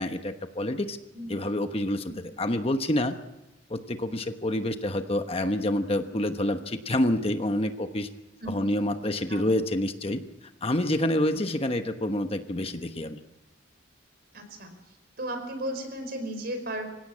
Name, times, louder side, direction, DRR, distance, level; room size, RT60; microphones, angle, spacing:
voice 1, 0.0-1.0 1.3-3.2 3.7-8.1 8.5-10.2 10.6-13.2, left 1 dB, 30° left, 7 dB, 1.1 m, -27 dB
voice 2, 14.3-14.7 15.2-16.9, right 1 dB, 55° right, 7 dB, 4.8 m, -35 dB
25.5 x 17.0 x 8.6 m, 1.0 s
head